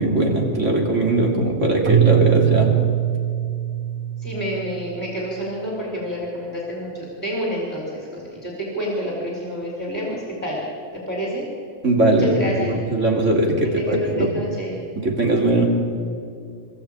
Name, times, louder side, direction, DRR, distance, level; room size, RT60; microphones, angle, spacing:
voice 1, 0.0-2.7 11.8-14.3 15.0-15.7, right 2 dB, 85° right, 0 dB, 3.2 m, -20 dB
Keyboard (musical), 1.9-5.0, right 12 dB, 50° right, 0.7 m, -21 dB
voice 2, 4.2-10.6 10.9-11.5 12.2-12.8 13.6-14.7, equal, 10° left, -3 dB, 4.5 m, -28 dB
26.5 x 14.0 x 8.8 m, 2.3 s
omnidirectional pair, 1.3 m